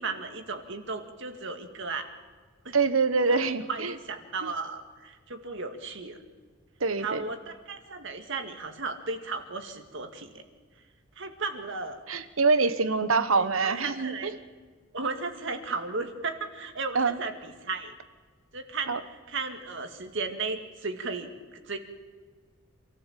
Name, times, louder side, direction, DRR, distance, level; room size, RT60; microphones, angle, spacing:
voice 1, 0.0-2.1 2.6-2.8 3.3-6.2 7.0-10.4 11.2-12.0 13.4-14.3 14.9-17.9 18.5-21.8, right 4 dB, 65° right, 6 dB, 2.1 m, -35 dB
voice 2, 2.7-3.9 4.4-4.5 6.8-7.2 12.1-14.3 16.9-17.2 18.9-19.0, right 4 dB, 85° right, 12 dB, 1.2 m, -25 dB
26.5 x 14.5 x 7.5 m, 1.5 s
head